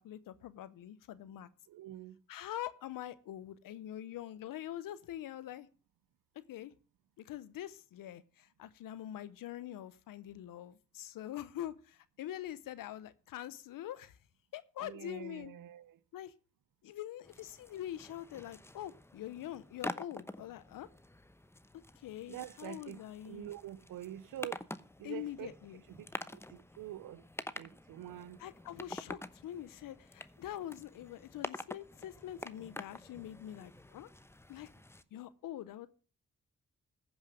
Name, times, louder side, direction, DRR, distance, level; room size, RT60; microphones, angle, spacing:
voice 1, 0.0-1.5 2.3-5.7 6.5-6.7 7.2-14.2 14.5-15.5 16.1-16.3 16.8-20.9 22.0-23.5 25.0-25.8 28.4-34.1 34.5-34.7 35.1-35.9, left 12 dB, 90° left, 0.8 m, -44 dB
voice 2, 1.7-2.2 14.8-16.0 22.3-24.7 25.0-25.5 25.9-27.3 27.5-28.5, right 12 dB, 85° right, 0.6 m, -46 dB
sound 1, 17.2-35.0, left 1 dB, 10° left, 0.8 m, -48 dB
15.0 x 5.6 x 6.3 m
supercardioid pair, 40°, 32 cm